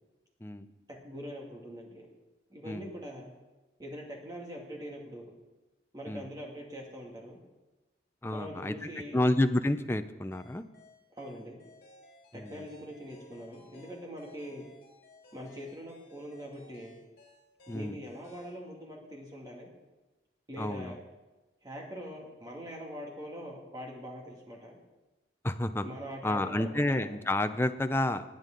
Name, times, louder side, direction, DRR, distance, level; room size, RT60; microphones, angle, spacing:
voice 1, 0.9-2.1 2.5-3.3 3.8-5.3 5.9-7.4 8.3-9.2 11.2-11.6 12.3-14.7 15.3-17.0 17.7-19.7 20.5-21.0 21.6-24.8 25.8-27.1, equal, 20° right, -2 dB, 2.4 m, -43 dB
voice 2, 8.2-8.7 9.1-10.6 12.3-12.7 17.7-18.0 20.6-21.0 25.4-25.8 26.2-28.2, left 1 dB, 15° left, 9 dB, 0.5 m, -30 dB
sound 1, 10.3-18.6, left 2 dB, 55° left, 4.4 m, -58 dB
19.0 x 9.2 x 3.9 m, 1.1 s
head